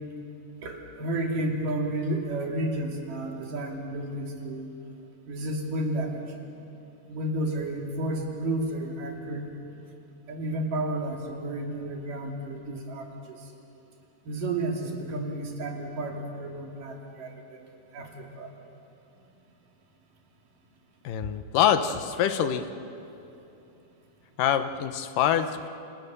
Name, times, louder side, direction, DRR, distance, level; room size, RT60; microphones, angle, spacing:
voice 1, 0.6-4.7 5.3-6.2 7.1-9.5 10.3-13.4 14.3-17.6 17.9-18.5, right 1 dB, 85° right, 1 dB, 4.4 m, -31 dB
voice 2, 21.0-22.7 24.4-25.7, left 9 dB, 85° left, 9 dB, 2.7 m, -25 dB
28.5 x 28.0 x 6.9 m, 2.8 s
omnidirectional pair, 3.7 m